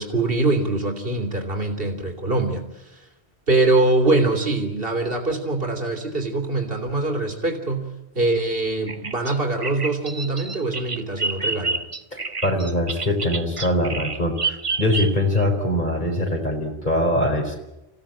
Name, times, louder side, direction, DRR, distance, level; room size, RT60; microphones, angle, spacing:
voice 1, 0.0-3.1 3.5-7.9 8.2-11.8, right 2 dB, 60° right, 4 dB, 3.5 m, -23 dB
Bird vocalization bird call bird song, 8.9-15.4, right 3 dB, 30° right, 1.1 m, -29 dB
voice 2, 12.1-17.6, left 1 dB, 45° left, 1 dB, 4.5 m, -23 dB
28.0 x 16.5 x 8.9 m, 0.93 s
omnidirectional pair, 1.1 m